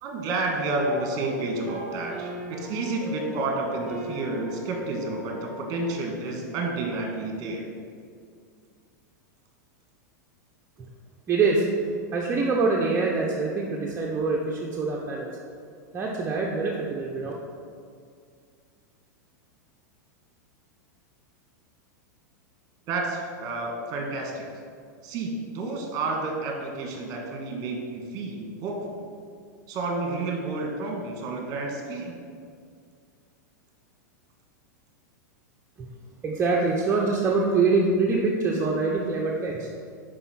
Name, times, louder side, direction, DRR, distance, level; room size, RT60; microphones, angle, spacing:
voice 1, 0.0-7.7 22.9-24.5 25.0-29.0 29.7-32.1, right 2 dB, 40° right, 1 dB, 1.4 m, -30 dB
sound 1, 0.8-6.0, equal, 5° right, 1.3 m, -39 dB
voice 2, 11.3-11.6 12.1-15.4 15.9-17.3 35.8-35.9 36.2-39.7, right 4 dB, 25° right, -3 dB, 0.7 m, -24 dB
5.6 x 5.0 x 4.2 m, 2.2 s
hypercardioid pair, 110°, 10 cm